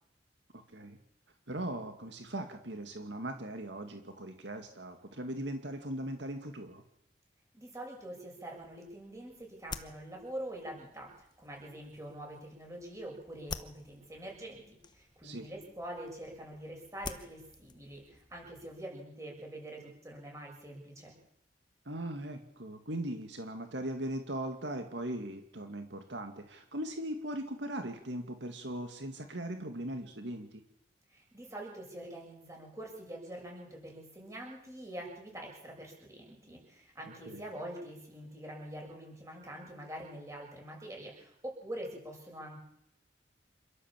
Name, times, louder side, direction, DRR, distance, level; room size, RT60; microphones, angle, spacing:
voice 1, 0.5-1.0 1.5-6.8 15.2-15.5 21.9-30.6 37.0-37.4, right 1 dB, 80° right, 5 dB, 2.2 m, -39 dB
voice 2, 7.5-21.1 31.1-42.6, right 1 dB, 15° right, 0 dB, 7.0 m, -45 dB
sound 1, 8.6-18.9, left 4 dB, 25° left, 1.0 m, -49 dB
27.5 x 13.0 x 7.6 m, 0.78 s
head